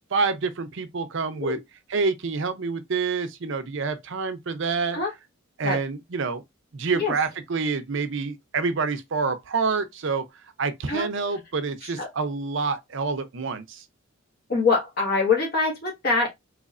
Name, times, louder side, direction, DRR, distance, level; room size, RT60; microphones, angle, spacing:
voice 1, 0.1-1.6 1.9-5.0 5.6-6.4 6.7-10.2 10.6-13.8, right 4 dB, 65° right, 0.6 m, -27 dB
voice 2, 14.5-16.3, left 4 dB, 50° left, 1.5 m, -24 dB
4.1 x 3.0 x 2.5 m
head